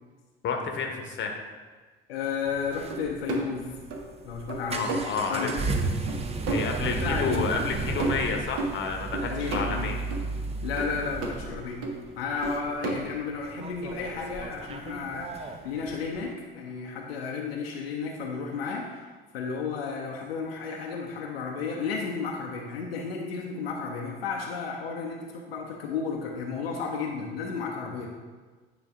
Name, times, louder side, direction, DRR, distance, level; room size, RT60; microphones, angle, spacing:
voice 1, 0.4-1.4 4.7-5.5 6.4-10.0, left 5 dB, 40° left, 3 dB, 1.0 m, -30 dB
voice 2, 2.1-3.7 4.2-4.9 5.3-5.9 6.8-7.5 9.2-9.9 10.6-11.9 12.2-28.1, left 5 dB, 75° left, 0 dB, 0.7 m, -33 dB
sound 1, 2.5-16.3, right 3 dB, 20° right, 0.6 m, -34 dB
sound 2, 2.9-3.5 3.9-4.2 4.5-5.1 5.5-5.6 6.1-6.2 6.5-7.2 7.6-7.7 8.0-8.7 9.1-9.7 10.1-10.3 10.8-11.3 11.8-12.1 12.4-13.0, right 3 dB, 50° right, 1.0 m, -32 dB
9.0 x 3.2 x 3.6 m, 1.4 s
figure-of-eight pair, 60°, 30 cm